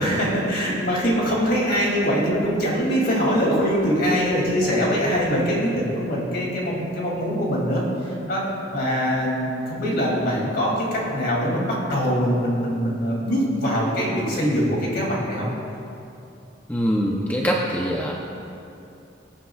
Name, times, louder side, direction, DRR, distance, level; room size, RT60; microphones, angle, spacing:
voice 1, 0.0-8.4 8.7-15.5, equal, 55° left, -3 dB, 2.9 m, -23 dB
voice 2, 16.7-18.1, equal, 10° left, -2 dB, 0.7 m, -23 dB
22.5 x 8.8 x 2.4 m, 2.7 s
head